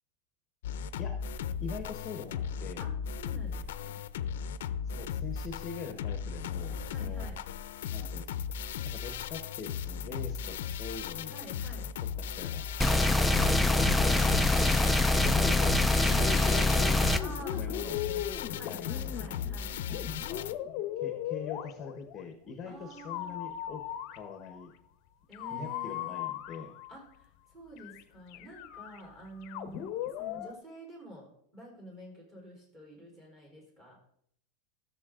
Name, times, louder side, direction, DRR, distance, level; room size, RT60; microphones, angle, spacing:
sound 1, 0.6-20.5, left 7 dB, 80° left, 0.6 m, -37 dB
voice 1, 1.6-2.8 4.8-7.3 7.9-8.3 8.8-11.4 12.2-12.7 13.4-14.2 15.2-15.8 16.2-18.2 18.5-19.2 20.3-20.5 21.0-23.8 24.1-24.7 25.5-26.7, left 5 dB, 20° left, 5 dB, 1.2 m, -43 dB
voice 2, 2.8-4.0 6.8-7.4 11.3-11.9 17.2-20.1 22.6-23.4 25.3-26.3 26.9-27.3 27.5-34.0, right 1 dB, 15° right, -3 dB, 4.6 m, -49 dB
sound 2, 12.8-17.2, left 2 dB, 5° left, 0.4 m, -24 dB
sound 3, 16.0-22.2 22.9-24.7 25.3-27.0 27.8-28.0 28.3-30.5, left 11 dB, 40° left, 0.8 m, -38 dB
14.0 x 6.9 x 3.8 m, 0.67 s
supercardioid pair, 160°, 0 cm